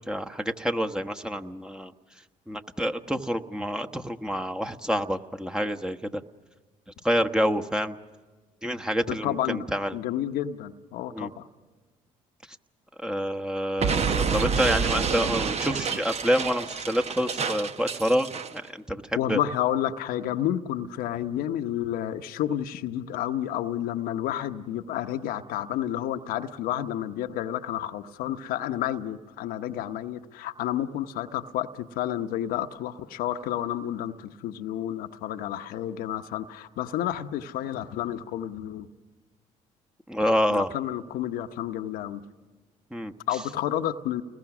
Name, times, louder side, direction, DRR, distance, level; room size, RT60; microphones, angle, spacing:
voice 1, 0.1-1.9 2.5-6.2 7.0-7.9 8.6-9.9 11.1-11.3 13.0-18.3 18.5-18.6 18.9-19.4 40.1-40.7 42.9-43.1, equal, 5° right, 5 dB, 1.2 m, -27 dB
voice 2, 9.1-9.7 9.9-11.4 19.2-38.9 40.5-42.2 43.3-44.2, left 11 dB, 80° left, 7 dB, 0.9 m, -30 dB
Explosion, 13.8-18.6, right 6 dB, 45° right, 1.0 m, -28 dB
29.0 x 21.0 x 6.1 m, 1.4 s
supercardioid pair, 65°, 15 cm